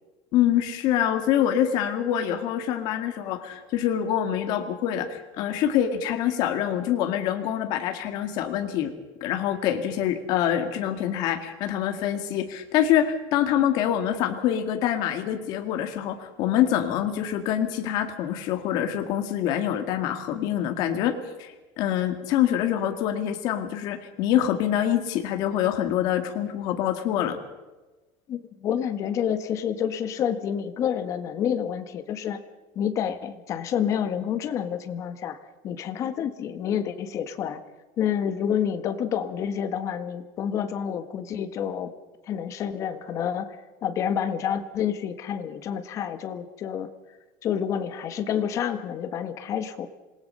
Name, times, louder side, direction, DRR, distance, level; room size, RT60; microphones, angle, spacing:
voice 1, 0.3-8.9 9.2-27.4, left 10 dB, 55° left, 6 dB, 2.0 m, -25 dB
voice 2, 28.3-32.4 32.7-35.4 35.6-37.6 38.0-41.9 42.3-46.9 47.4-49.9, left 8 dB, 40° left, 10 dB, 1.6 m, -28 dB
26.5 x 20.0 x 5.6 m, 1.2 s
cardioid pair, 160°, 8 cm